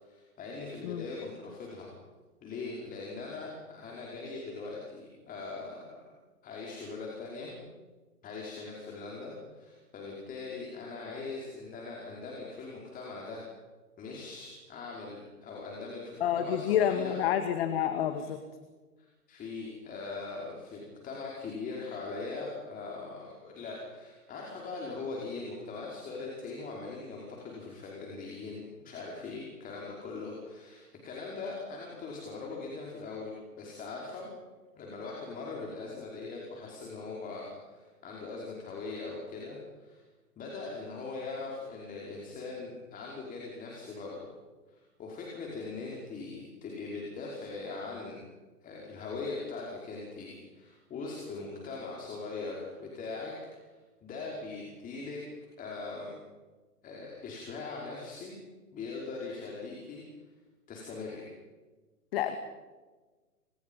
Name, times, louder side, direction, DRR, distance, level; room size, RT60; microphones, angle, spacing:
voice 1, 0.0-1.9 2.4-6.0 6.4-7.6 8.2-13.4 14.0-17.2 18.2-18.3 19.0-34.3 34.8-40.0 40.4-44.3 44.7-48.2 48.6-53.7 54.0-55.2 55.6-56.1 56.8-58.4 58.7-60.0 60.7-61.3, left 3 dB, 20° left, -2 dB, 5.3 m, -41 dB
voice 2, 16.2-18.4 62.1-62.4, left 10 dB, 40° left, 8 dB, 2.2 m, -28 dB
29.5 x 26.5 x 5.6 m, 1.3 s
figure-of-eight pair, 125°, 46 cm